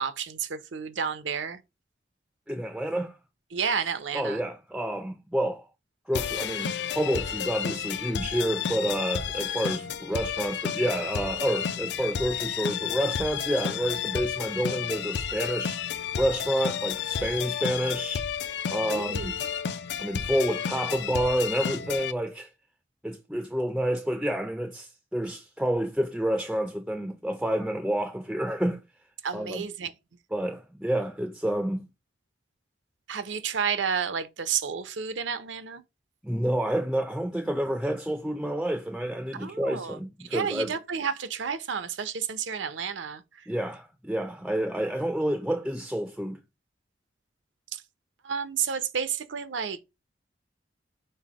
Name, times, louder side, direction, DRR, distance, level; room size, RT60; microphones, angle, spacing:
voice 1, 0.0-1.6 3.5-4.4 18.9-19.4 29.2-29.9 33.1-35.8 39.3-40.0 40.3-43.5 47.7-47.8 48.2-49.8, right 7 dB, 85° right, 0.6 m, -31 dB
voice 2, 2.5-3.2 4.1-5.7 6.1-15.8 16.2-18.3 18.7-19.4 20.0-22.5 23.0-28.8 29.3-29.7 30.3-31.9 36.2-40.7 43.5-46.4, right 1 dB, 5° right, 0.4 m, -29 dB
sound 1, 6.1-22.1, left 8 dB, 65° left, 0.4 m, -31 dB
5.5 x 2.1 x 4.7 m
head